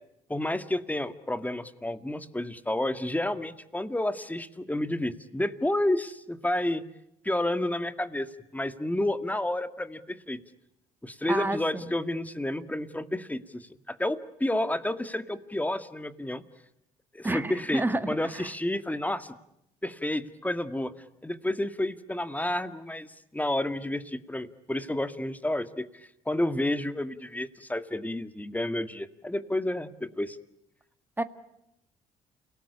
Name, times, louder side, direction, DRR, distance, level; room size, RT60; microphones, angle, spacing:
voice 1, 0.3-6.8 7.2-8.3 8.5-10.4 11.0-16.4 17.1-19.3 19.8-20.9 21.2-30.4, left 1 dB, 10° left, 10 dB, 2.0 m, -30 dB
voice 2, 11.3-11.9 17.2-18.5 31.2-31.3, right 2 dB, 10° right, 9 dB, 1.8 m, -30 dB
29.5 x 18.5 x 9.9 m, 0.81 s
supercardioid pair, 65°, 17 cm